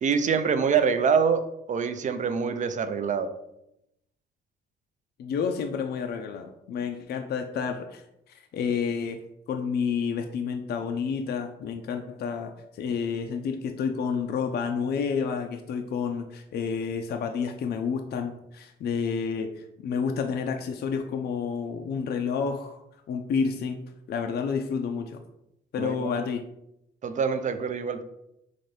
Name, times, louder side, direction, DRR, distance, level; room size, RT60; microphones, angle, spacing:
voice 1, 0.0-3.3 25.8-26.1 27.0-28.0, right 6 dB, 40° right, 10 dB, 0.4 m, -25 dB
voice 2, 5.2-9.2 9.5-22.8 23.1-25.2 25.7-26.5, left 6 dB, 55° left, 5 dB, 0.4 m, -30 dB
4.0 x 2.5 x 3.2 m, 0.82 s
cardioid pair, 90°, 20 cm